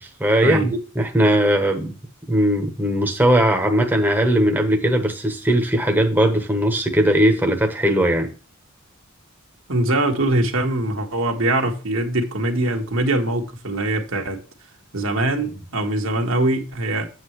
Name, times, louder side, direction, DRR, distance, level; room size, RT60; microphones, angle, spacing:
voice 1, 0.0-1.9 2.3-8.3, right 1 dB, 10° right, 1.1 m, -19 dB
voice 2, 9.7-14.4 14.9-17.1, right 1 dB, 65° right, 1.5 m, -22 dB
8.0 x 7.5 x 3.1 m
head